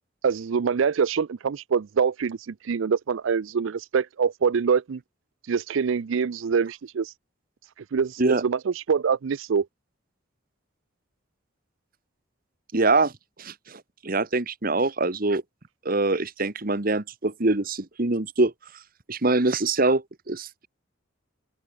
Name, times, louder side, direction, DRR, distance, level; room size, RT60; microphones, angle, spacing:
voice 1, 0.2-5.0 5.5-7.1 7.9-9.7, right 6 dB, 80° right, 0.5 m, -25 dB
voice 2, 12.7-13.1 13.4-15.4 15.8-18.5 19.1-20.7, right 2 dB, 45° right, 1.4 m, -24 dB
open air
head